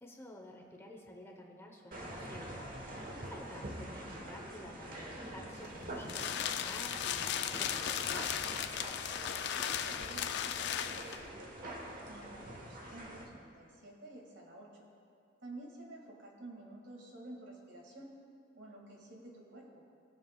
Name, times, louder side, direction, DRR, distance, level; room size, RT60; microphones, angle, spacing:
voice 1, 0.0-2.6 2.9-8.3, left 1 dB, 15° left, 1 dB, 0.9 m, -51 dB
sound 1, 1.9-13.2, right 1 dB, 45° right, 1.2 m, -45 dB
sound 2, 5.6-11.3, left 9 dB, 60° left, 0.4 m, -36 dB
voice 2, 9.6-11.7 12.1-14.9 15.4-18.1 18.5-19.7, right 2 dB, 65° right, -2 dB, 2.0 m, -51 dB
20.5 x 7.2 x 2.3 m, 2.5 s
head